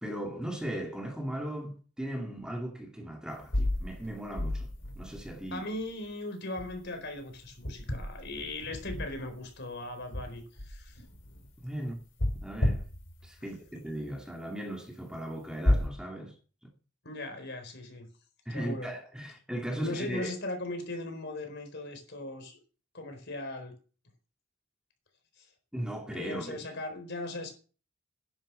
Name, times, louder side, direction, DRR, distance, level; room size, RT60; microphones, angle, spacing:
voice 1, 0.0-4.7 5.0-5.6 11.6-12.0 12.3-12.8 13.2-16.3 18.5-20.3 25.7-26.6, right 1 dB, 5° right, 2.1 m, -37 dB
sound 1, 3.4-5.6 6.6-6.9 7.2-9.6 10.0-11.6 12.2-13.3 15.6-15.9, left 1 dB, 70° left, 5.7 m, -32 dB
voice 2, 5.5-11.0 17.0-18.1 18.5-18.9 19.7-22.6 22.9-23.7 25.4-25.5 26.1-27.5, left 2 dB, 55° left, 4.3 m, -38 dB
11.0 x 10.5 x 6.3 m
head